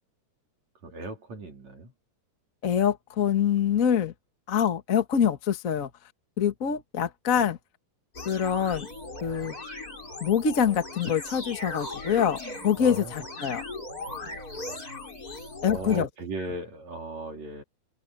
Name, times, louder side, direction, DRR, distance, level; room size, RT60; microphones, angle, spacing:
voice 1, 0.8-1.9 7.4-7.5 12.8-13.1 15.6-17.6, right 2 dB, 50° right, 4.6 m, -37 dB
voice 2, 2.6-4.1 4.5-5.9 6.4-7.6 8.2-8.9 9.2-9.5 10.2-12.4 12.6-13.6 15.6-16.1, left 8 dB, 50° left, 0.9 m, -25 dB
sound 1, 8.1-16.0, left 2 dB, 25° left, 7.2 m, -38 dB
omnidirectional pair, 4.2 m